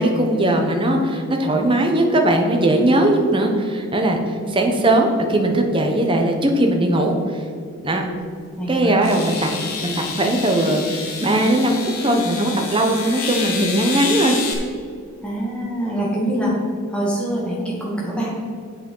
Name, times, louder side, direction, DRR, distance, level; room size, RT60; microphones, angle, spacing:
voice 1, 0.0-7.4 7.8-8.0 8.7-9.5 9.8-14.3, right 1 dB, 25° right, 3 dB, 1.1 m, -19 dB
sound 1, 8.1-8.2 9.0-14.5, left 5 dB, 85° left, 2.0 m, -29 dB
voice 2, 8.6-9.0 15.2-16.5 16.9-18.3, right 1 dB, 5° left, -5 dB, 2.3 m, -24 dB
7.8 x 7.8 x 5.5 m, 2.3 s
head